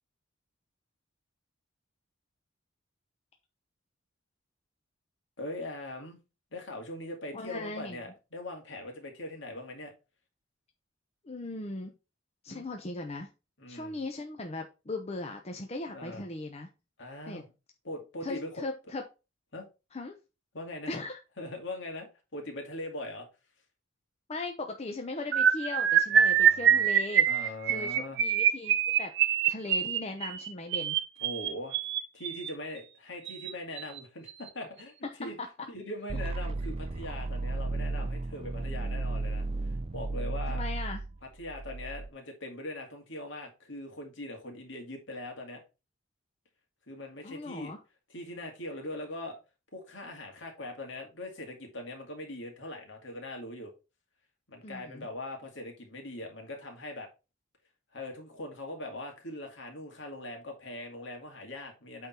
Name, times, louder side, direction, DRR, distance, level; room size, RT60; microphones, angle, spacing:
voice 1, 5.4-6.2 6.5-9.9 12.5-12.7 13.6-14.0 15.9-16.2 17.0-17.5 17.8-18.6 19.5-19.7 20.5-20.9 21.4-23.3 26.1-26.9 27.3-28.2 31.2-31.8 32.1-34.9 35.2-35.4 35.7-39.5 39.9-40.6 41.4-45.6 46.9-47.7 48.1-49.4 49.7-53.7 54.5-57.1 57.9-62.1, left 1 dB, 65° left, 2.3 m, -41 dB
voice 2, 7.3-8.0 11.2-11.9 12.4-13.3 13.7-16.7 17.3-17.4 18.2-19.0 19.9-20.2 20.9-21.2 24.3-29.1 29.5-31.0 35.0-35.1 40.5-41.0 47.2-47.8 54.6-55.0, left 2 dB, 35° left, 0.8 m, -38 dB
sound 1, 25.3-32.5 33.3-33.5 33.8-34.0 34.3-34.5, right 8 dB, 60° right, 0.8 m, -25 dB
sound 2, 36.1-42.1, right 2 dB, 30° right, 0.5 m, -34 dB
8.6 x 3.8 x 4.3 m
head